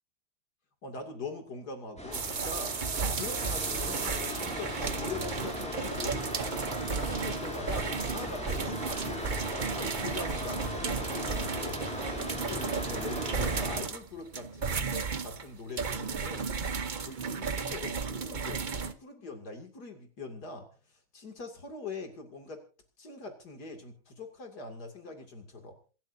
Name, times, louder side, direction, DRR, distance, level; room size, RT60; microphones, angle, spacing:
voice 1, 0.8-2.8 3.1-6.3 6.7-9.3 9.7-16.5 17.0-20.7 21.1-22.6 23.0-25.8, left 3 dB, 75° left, 4 dB, 3.1 m, -42 dB
sound 1, 2.0-13.8, left 1 dB, 5° left, 5.9 m, -38 dB
sound 2, 2.1-18.9, right 5 dB, 35° right, 0.9 m, -34 dB
27.0 x 13.5 x 2.7 m, 0.36 s
omnidirectional pair, 1.7 m